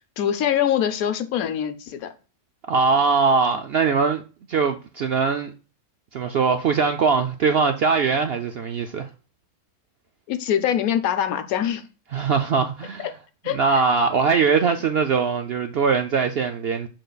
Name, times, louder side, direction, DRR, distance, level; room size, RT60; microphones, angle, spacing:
voice 1, 0.2-2.1 10.3-11.8 13.4-13.8, left 9 dB, 75° left, 1.1 m, -23 dB
voice 2, 2.7-4.2 4.5-5.5 6.1-9.1 12.1-13.1 13.5-16.9, right 5 dB, 65° right, 0.6 m, -21 dB
11.5 x 3.9 x 2.3 m
omnidirectional pair, 1.5 m